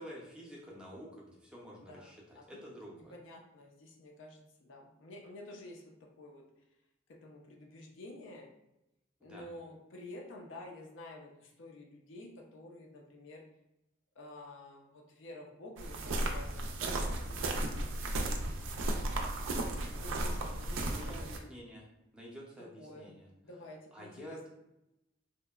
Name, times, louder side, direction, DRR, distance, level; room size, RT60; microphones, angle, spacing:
voice 1, 0.0-3.1 9.2-9.5 20.8-21.8 22.1-23.3 23.9-24.5, equal, 5° right, -4 dB, 0.5 m, -49 dB
voice 2, 1.8-2.1 2.4-6.4 7.1-8.5 9.2-13.5 14.2-17.8 18.2-18.9 19.9-21.5 22.8-23.1 23.4-24.4, left 2 dB, 70° left, 1 dB, 0.4 m, -50 dB
sound 1, 15.8-21.4, right 1 dB, 70° right, 0.3 m, -35 dB
2.7 x 2.0 x 2.3 m, 0.88 s
head